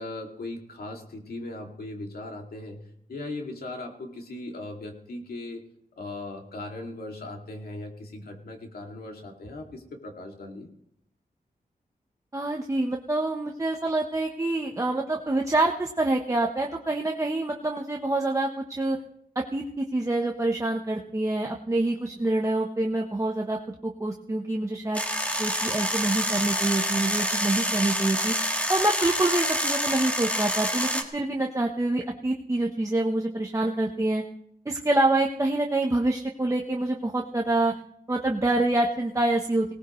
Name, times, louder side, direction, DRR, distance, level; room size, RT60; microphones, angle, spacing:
voice 1, 0.0-5.6 6.0-10.7, left 2 dB, 85° left, 2 dB, 2.3 m, -38 dB
voice 2, 12.3-19.0 19.3-25.0 25.4-28.3 28.7-34.2 34.7-37.7 38.1-39.7, right 2 dB, 20° right, 1 dB, 0.9 m, -26 dB
sound 1, 24.9-31.0, equal, 10° left, 1.6 m, -27 dB
19.0 x 18.0 x 3.1 m, 0.73 s
wide cardioid pair, 140°, 15 cm